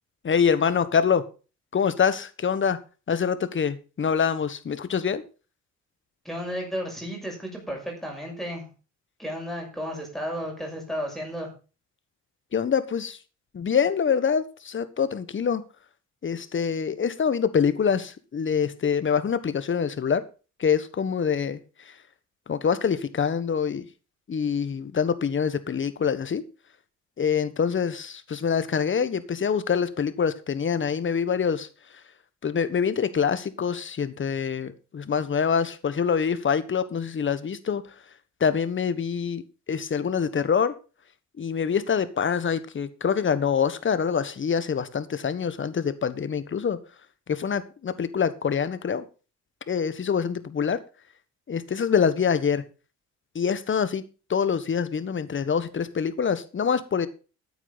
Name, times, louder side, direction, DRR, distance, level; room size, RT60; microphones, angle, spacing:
voice 1, 0.2-1.2 1.7-2.8 3.1-5.2 12.5-13.2 13.5-15.6 16.2-20.2 20.6-21.6 22.5-23.9 24.3-26.4 27.2-31.7 32.4-37.8 38.4-39.4 39.7-40.7 41.4-46.8 47.3-49.0 49.7-50.8 51.5-52.6 53.3-54.0 54.3-57.1, left 6 dB, 40° left, 1.4 m, -25 dB
voice 2, 6.2-8.6 9.2-11.5, equal, ahead, 6.4 m, -33 dB
13.5 x 9.1 x 4.1 m
cardioid pair, 90°, 30 cm